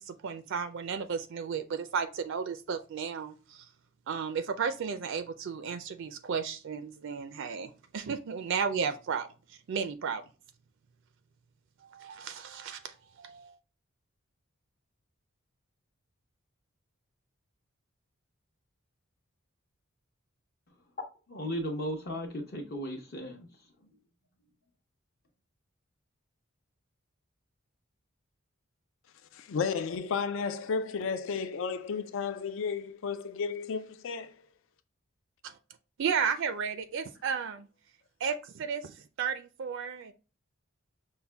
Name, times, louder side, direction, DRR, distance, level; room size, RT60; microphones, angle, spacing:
voice 1, 0.0-3.7 4.1-10.2 11.9-13.6 35.4-35.6 36.0-37.7 38.2-40.1, right 6 dB, 60° right, 0.4 m, -34 dB
voice 2, 21.3-23.5, equal, 50° left, 0.8 m, -35 dB
voice 3, 29.3-34.4, left 5 dB, 65° left, 0.4 m, -33 dB
5.6 x 2.2 x 3.3 m
head